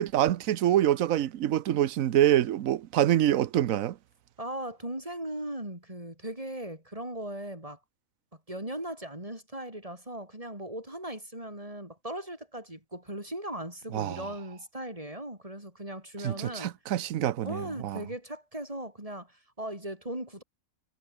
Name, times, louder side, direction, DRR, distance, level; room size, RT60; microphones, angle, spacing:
voice 1, 0.0-4.0 13.9-14.2 16.2-18.0, right 12 dB, 75° right, 1.2 m, -25 dB
voice 2, 4.4-7.8 8.5-16.7 17.4-20.4, right 1 dB, 25° right, 6.3 m, -38 dB
omnidirectional pair, 1.5 m